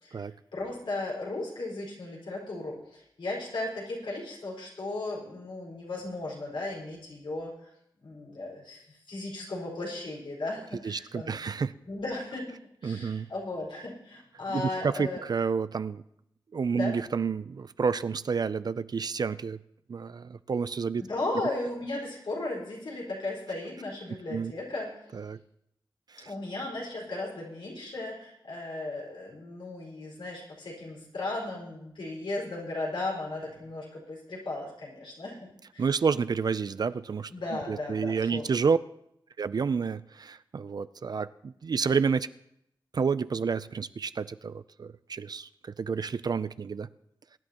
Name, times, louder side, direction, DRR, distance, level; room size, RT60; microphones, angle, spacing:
voice 1, 0.0-7.5 8.0-11.4 11.9-15.2 16.7-16.9 21.0-24.9 26.2-35.8 37.3-38.5, left 2 dB, 85° left, -3 dB, 4.6 m, -36 dB
voice 2, 10.8-11.7 12.8-13.3 14.5-16.0 16.5-19.6 19.9-21.0 24.3-24.5 25.1-25.4 26.1-26.3 35.8-38.8 39.4-42.3 42.9-46.9, right 5 dB, 55° right, 15 dB, 0.4 m, -30 dB
22.5 x 10.5 x 2.9 m, 0.77 s
wide cardioid pair, 95°, 8 cm